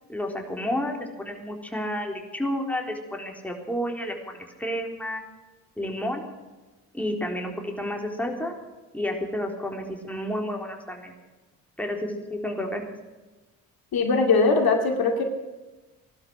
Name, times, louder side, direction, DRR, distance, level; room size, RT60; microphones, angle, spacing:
voice 1, 0.1-5.2 5.8-6.3 6.9-8.5 8.9-11.1 11.8-12.8, left 1 dB, 5° left, 1 dB, 4.0 m, -31 dB
voice 2, 13.9-15.2, left 4 dB, 55° left, 3 dB, 2.4 m, -21 dB
17.5 x 12.0 x 6.5 m, 1.2 s
hypercardioid pair, 45°, 42 cm